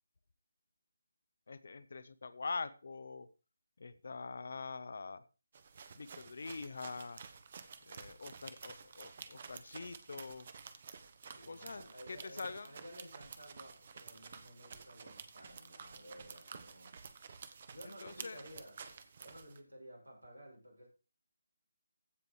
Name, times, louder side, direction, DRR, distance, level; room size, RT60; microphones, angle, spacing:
voice 1, 1.5-3.3 3.8-5.2 5.9-7.2 7.8-10.5 11.5-12.7 17.8-18.4, left 4 dB, 55° left, 15 dB, 1.0 m, -44 dB
sound 1, 5.5-19.6, right 5 dB, 40° right, 1.2 m, -51 dB
voice 2, 11.3-17.0 17.7-20.9, equal, 90° right, -2 dB, 6.3 m, -54 dB
15.5 x 5.3 x 4.7 m, 0.34 s
figure-of-eight pair, 150°, 0 cm